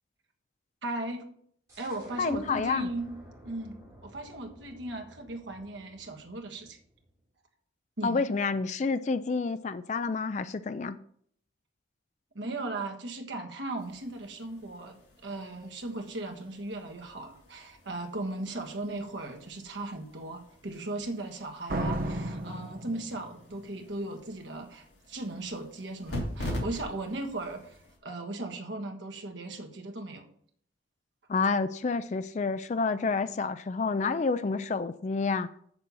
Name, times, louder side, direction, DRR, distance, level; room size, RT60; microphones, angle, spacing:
voice 1, 0.8-1.2 1.8-3.2 3.4-6.8 8.0-8.3 12.3-30.3, right 2 dB, 70° right, 1.5 m, -37 dB
sound 1, 1.7-7.2, equal, 15° right, 4.6 m, -53 dB
voice 2, 2.2-2.9 8.0-11.0 31.3-35.5, left 4 dB, 35° left, 0.3 m, -29 dB
sound 2, 13.8-28.0, left 1 dB, 60° left, 3.1 m, -44 dB
Slam, 21.7-23.6, right 1 dB, 50° right, 0.8 m, -33 dB
7.3 x 6.8 x 5.5 m
head